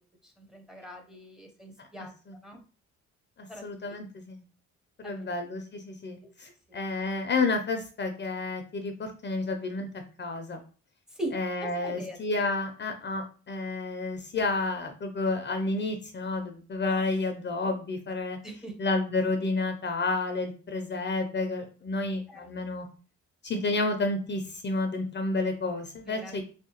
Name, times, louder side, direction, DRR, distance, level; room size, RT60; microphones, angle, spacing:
voice 1, 0.2-2.1 2.4-2.6 3.5-3.9 5.0-5.3 6.2-6.3 6.7-6.8 11.1-11.3 11.6-12.2 18.4-18.8 22.3-22.5 26.0-26.4, right 1 dB, ahead, 4 dB, 0.7 m, -41 dB
voice 2, 1.8-2.4 3.4-4.4 5.0-9.9 10.2-10.6 11.3-18.4 18.8-22.9 23.4-26.4, left 3 dB, 35° left, 6 dB, 0.5 m, -30 dB
3.1 x 2.8 x 2.9 m, 0.37 s
cardioid pair, 90°, 30 cm